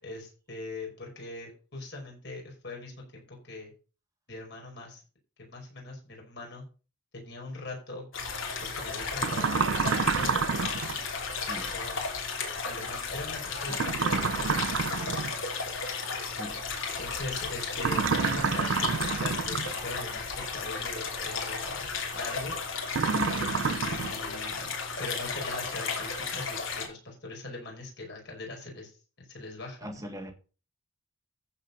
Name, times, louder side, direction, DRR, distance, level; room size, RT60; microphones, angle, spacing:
voice 1, 0.0-3.7 4.3-5.0 5.4-6.6 7.1-8.1 8.7-10.4 11.5-12.0 12.6-14.6 14.8-15.2 17.0-22.5 23.4-24.7 25.0-28.9 29.2-29.9, left 2 dB, 55° left, 5.1 m, -41 dB
sound 1, 8.1-26.9, left 5 dB, 70° left, 3.2 m, -34 dB
sound 2, 9.2-11.0 13.7-15.4 17.8-19.8 22.9-24.1, right 5 dB, 65° right, 0.6 m, -28 dB
voice 2, 16.3-16.6 23.0-23.5 29.8-30.3, equal, 15° right, 1.7 m, -39 dB
14.5 x 4.8 x 5.4 m
head